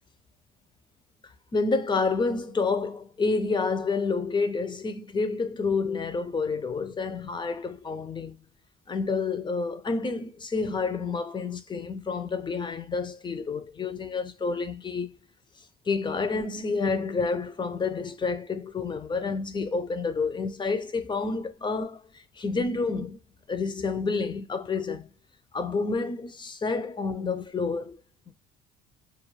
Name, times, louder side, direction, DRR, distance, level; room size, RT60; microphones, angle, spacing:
voice 1, 1.2-8.4 8.9-15.1 15.9-23.2 23.5-25.1 25.5-28.0 28.3-28.4, left 4 dB, 20° left, 0.4 m, -29 dB
2.3 x 2.2 x 3.0 m
cardioid pair, 105°, 21 cm